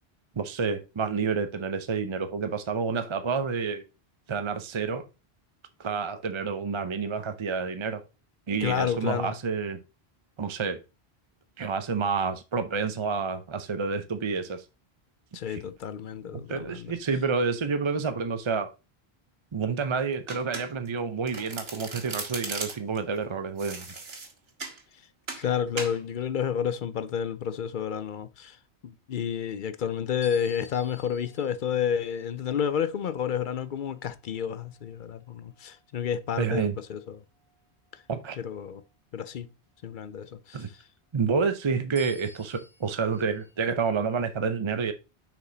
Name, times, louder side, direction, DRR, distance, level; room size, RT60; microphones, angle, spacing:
voice 1, 0.4-3.8 4.3-5.1 5.8-8.0 8.5-9.8 10.4-10.8 11.6-14.6 15.5-15.6 16.3-18.7 19.5-23.8 36.4-36.8 38.1-38.4 40.5-40.7 41.1-44.9, right 5 dB, 35° right, 0.5 m, -29 dB
voice 2, 8.6-9.3 15.3-16.9 25.4-28.6 28.8-37.2 38.4-38.8 39.1-39.5 39.8-40.6, left 8 dB, 55° left, 0.7 m, -30 dB
Domestic sounds home sounds, 20.3-21.0 21.3-23.0 23.6-24.8 25.3-25.5 25.8-26.0, right 3 dB, 70° right, 1.6 m, -37 dB
sound 1, 30.2-34.9 35.5-35.8 41.9-43.5, left 2 dB, 75° left, 2.6 m, -53 dB
6.5 x 5.0 x 3.8 m
omnidirectional pair, 1.1 m